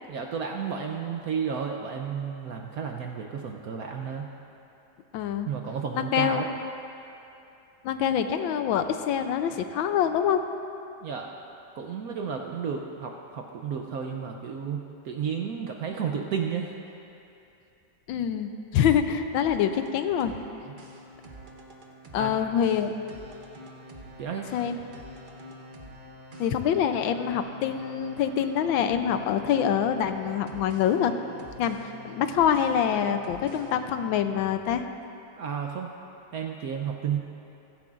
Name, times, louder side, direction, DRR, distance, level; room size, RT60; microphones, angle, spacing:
voice 1, 0.1-4.3 5.5-6.5 11.0-11.3 11.7-16.7 22.2-22.4 24.2-24.5 35.4-35.9 36.3-37.2, right 7 dB, 65° right, 2 dB, 0.9 m, -32 dB
voice 2, 5.1-5.5 5.9-6.5 7.8-10.4 18.1-20.4 22.1-22.9 24.5-24.8 26.4-31.1 31.6-34.8, left 8 dB, 85° left, 8 dB, 1.4 m, -25 dB
sound 1, 19.4-34.2, equal, 35° right, 0.8 m, -46 dB
15.5 x 15.5 x 2.5 m, 2.8 s
omnidirectional pair, 2.1 m